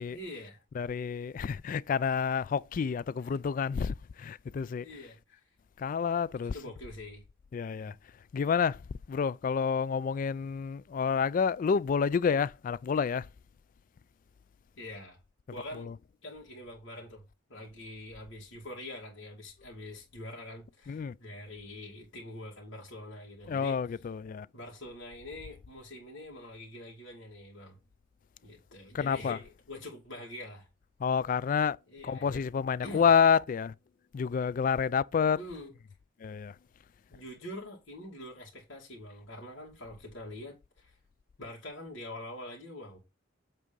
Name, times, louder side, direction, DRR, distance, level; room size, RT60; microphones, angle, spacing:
voice 1, 0.1-0.6 3.2-3.3 4.8-5.4 6.3-7.2 7.8-8.0 14.8-15.2 15.5-15.9 16.2-17.2 17.5-24.0 24.5-27.8 28.4-30.7 31.9-32.4 32.8-33.1 35.4-35.8 37.1-41.0 41.4-43.0, left 1 dB, 80° left, 2.7 m, -45 dB
voice 2, 0.8-4.9 5.8-6.5 7.5-7.9 8.3-8.8 9.1-13.3 15.8-15.9 20.9-21.2 23.5-24.5 28.9-29.4 31.0-31.8 32.0-33.7 34.1-35.4 36.2-36.5, left 6 dB, 45° left, 0.3 m, -29 dB
8.2 x 3.6 x 5.3 m
head